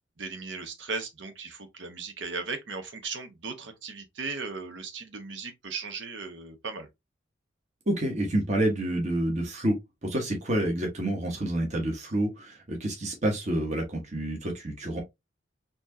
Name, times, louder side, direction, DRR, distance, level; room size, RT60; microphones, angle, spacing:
voice 1, 0.2-6.9, right 4 dB, 75° right, 1.0 m, -37 dB
voice 2, 7.9-15.0, right 1 dB, 40° right, 1.2 m, -28 dB
4.3 x 2.9 x 2.6 m
head